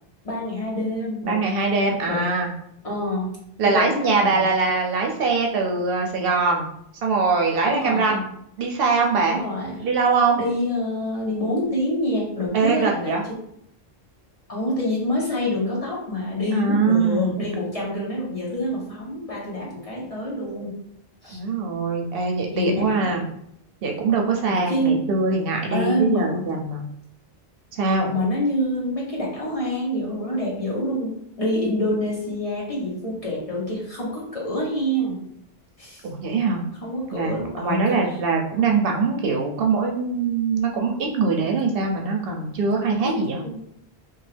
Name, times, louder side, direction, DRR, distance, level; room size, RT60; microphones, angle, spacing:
voice 1, 0.2-1.4 2.1-2.2 2.8-3.3 3.6-4.5 7.6-8.2 9.3-9.8 10.4-13.2 14.5-20.7 21.2-21.4 22.5-23.1 24.4-25.1 25.7-26.4 28.1-35.2 35.8-36.0 36.8-38.0 42.7-42.8 43.0-43.6, left 1 dB, 35° left, -5 dB, 0.9 m, -26 dB
voice 2, 1.2-2.5 3.6-6.7 7.0-8.2 8.6-9.4 9.8-10.4 12.5-13.2 16.5-17.5 21.3-23.2 23.8-26.8 27.7-28.1 36.0-36.6 37.1-43.4, right 4 dB, 70° right, 1 dB, 0.7 m, -22 dB
3.0 x 2.3 x 3.2 m, 0.73 s
omnidirectional pair, 1.1 m